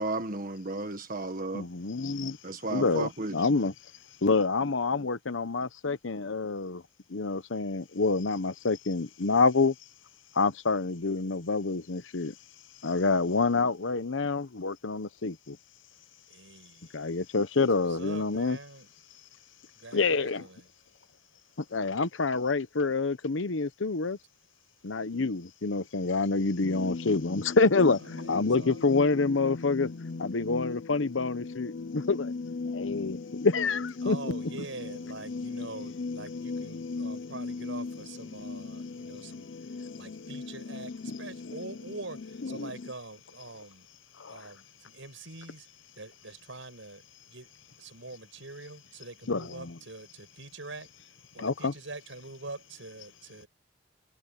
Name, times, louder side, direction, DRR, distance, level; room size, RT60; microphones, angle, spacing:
voice 1, 0.0-1.7 2.4-3.4, right 2 dB, 45° right, 1.4 m, -33 dB
voice 2, 1.5-2.4 2.7-3.7 4.2-6.8 7.1-9.7 10.3-12.3 12.8-15.6 16.9-18.6 19.9-20.4 21.6-24.2 24.8-29.9 30.2-32.3 32.7-34.7 42.4-42.7 44.2-44.5 49.3-49.8 51.4-51.7, left 3 dB, 90° left, 0.9 m, -27 dB
voice 3, 16.3-17.0 17.8-18.9 19.7-20.7 28.0-29.1 34.0-43.9 44.3-45.7 45.9-47.5 47.8-50.9 51.2-53.5, right 2 dB, 85° right, 5.7 m, -44 dB
sound 1, 26.6-42.9, left 3 dB, 60° left, 0.6 m, -38 dB
head